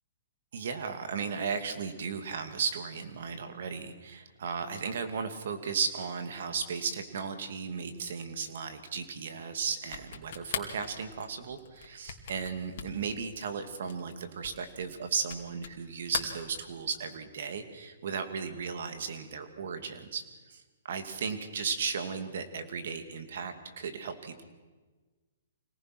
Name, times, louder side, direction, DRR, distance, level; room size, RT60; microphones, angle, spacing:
voice 1, 0.5-20.2 20.5-24.5, right 6 dB, 65° right, 8 dB, 2.5 m, -35 dB
sound 1, 9.8-15.8 16.1-17.1, left 8 dB, 60° left, 2.6 m, -41 dB
25.5 x 18.5 x 6.2 m, 1.3 s
hypercardioid pair, 140°, 0 cm